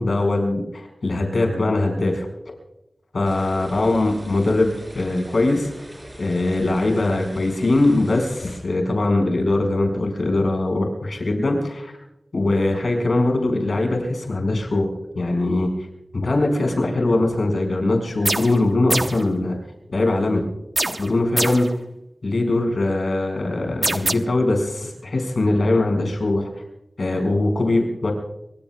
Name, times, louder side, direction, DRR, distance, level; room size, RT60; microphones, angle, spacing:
voice 1, 0.0-2.3 3.1-5.7 6.2-11.9 12.3-15.7 16.1-19.6 19.9-20.5 21.0-21.7 22.2-26.5 27.0-28.1, left 2 dB, 75° left, 2 dB, 4.8 m, -21 dB
sound 1, 3.2-8.6, equal, 20° right, 6.3 m, -41 dB
sound 2, 18.2-18.6 18.9-19.3 20.8-21.7 23.8-24.1, right 2 dB, 35° right, 0.8 m, -24 dB
25.0 x 23.5 x 2.3 m, 0.89 s
wide cardioid pair, 75°, 0 cm